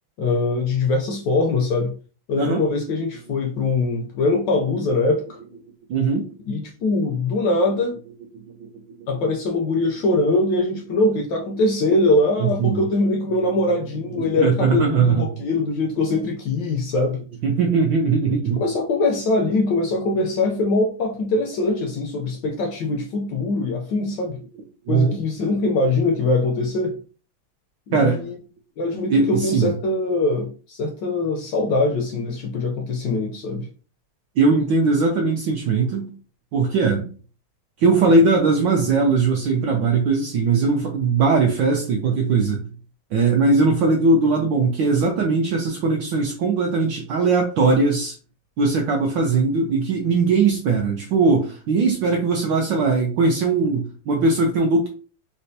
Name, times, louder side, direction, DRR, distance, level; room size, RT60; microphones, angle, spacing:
voice 1, 0.2-1.9 2.3-5.4 6.5-8.0 9.1-17.2 18.6-24.4 24.9-27.0 27.9-28.4 28.8-33.7, left 2 dB, 75° left, 1.0 m, -22 dB
voice 2, 5.9-6.3 8.5-8.7 9.0-9.1 12.4-12.8 14.2-15.2 17.4-18.6 24.9-25.2 27.9-28.2 29.1-29.7 34.4-36.1 36.5-37.1 37.8-42.6 43.1-48.2 48.6-54.9, right 4 dB, 75° right, 1.1 m, -20 dB
4.1 x 2.1 x 2.6 m
omnidirectional pair, 2.4 m